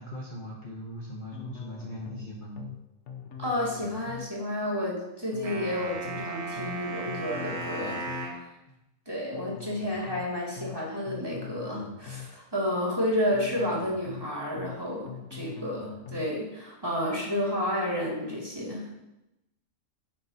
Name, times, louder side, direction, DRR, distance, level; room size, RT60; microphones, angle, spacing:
voice 1, 0.0-2.7 8.7-8.8, equal, 35° left, -4 dB, 1.4 m, -40 dB
sound 1, 1.3-2.3 2.6-2.8 3.1-4.3 5.3-6.3 6.6-6.8 7.1-8.3 9.3-10.3 10.6-10.8 11.1-12.3 13.3-14.3 14.6-14.8 15.1-16.3, left 8 dB, 60° left, 1.1 m, -43 dB
voice 2, 3.4-8.0 9.1-18.9, left 1 dB, 15° right, -6 dB, 2.8 m, -31 dB
sound 2, 5.4-8.4, right 3 dB, 90° right, 1.9 m, -36 dB
10.5 x 8.3 x 3.0 m, 0.91 s
omnidirectional pair, 1.5 m